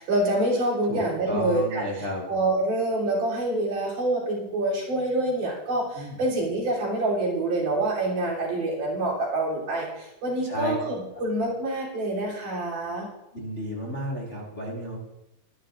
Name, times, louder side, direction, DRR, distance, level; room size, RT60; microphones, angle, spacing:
voice 1, 0.0-13.1, right 2 dB, 75° right, -5 dB, 4.8 m, -26 dB
voice 2, 0.9-2.2 5.9-6.2 10.4-10.7 13.3-15.0, equal, 25° left, -3 dB, 1.7 m, -32 dB
23.0 x 10.0 x 2.5 m, 0.90 s
omnidirectional pair, 3.7 m